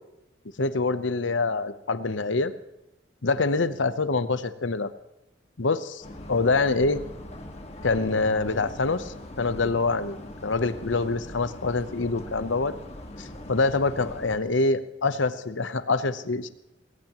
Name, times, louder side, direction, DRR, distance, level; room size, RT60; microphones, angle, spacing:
voice 1, 0.6-2.5 3.2-4.9 5.6-7.0 7.8-12.7 13.2-16.5, left 3 dB, 85° left, 12 dB, 0.9 m, -25 dB
sound 1, 6.0-14.4, left 1 dB, 35° left, 1.8 m, -41 dB
20.5 x 18.0 x 3.1 m, 0.92 s
head